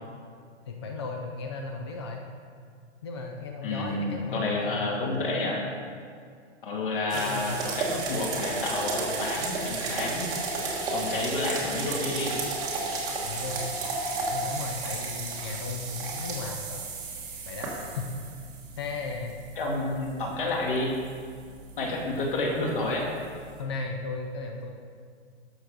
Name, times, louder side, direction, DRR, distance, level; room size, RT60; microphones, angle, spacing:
voice 1, 0.7-2.3 3.0-4.9 7.1-7.6 13.2-13.8 14.2-16.8 17.4-18.1 18.8-19.4 23.6-24.7, left 3 dB, 25° left, 2 dB, 0.4 m, -36 dB
voice 2, 3.6-5.6 6.6-10.3 10.9-12.3 19.6-20.9 21.8-23.1, left 2 dB, 50° left, -1 dB, 2.3 m, -29 dB
sound 1, 7.1-23.6, right 3 dB, 10° right, 1.1 m, -34 dB
12.5 x 6.4 x 5.1 m, 2.1 s
hypercardioid pair, 170°, 35 cm